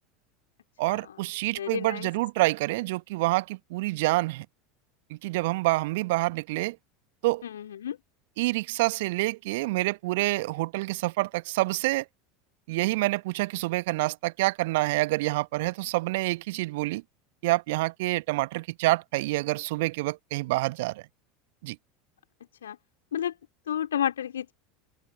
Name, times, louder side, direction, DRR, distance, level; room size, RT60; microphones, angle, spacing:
voice 1, 0.8-4.4 5.1-6.8 7.2-7.4 8.4-12.0 12.7-17.0 17.4-21.1 21.6-21.8, right 21 dB, 60° right, 1.4 m, -27 dB
voice 2, 1.6-2.1 7.4-8.0 22.6-22.8 23.1-23.3 23.7-24.5, left 10 dB, 70° left, 3.1 m, -31 dB
open air
figure-of-eight pair, 75°, 0 cm